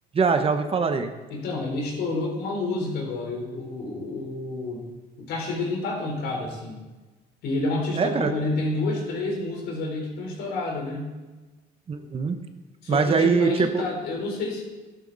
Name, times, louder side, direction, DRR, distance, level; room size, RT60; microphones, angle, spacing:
voice 1, 0.1-1.1 8.0-8.3 11.9-12.4 12.9-13.8, right 5 dB, 35° right, 7 dB, 1.1 m, -22 dB
voice 2, 1.3-4.9 5.2-6.8 7.4-11.1 12.8-14.6, left 2 dB, 80° left, 0 dB, 4.1 m, -29 dB
12.5 x 12.0 x 4.1 m, 1.2 s
cardioid pair, 110°, 17 cm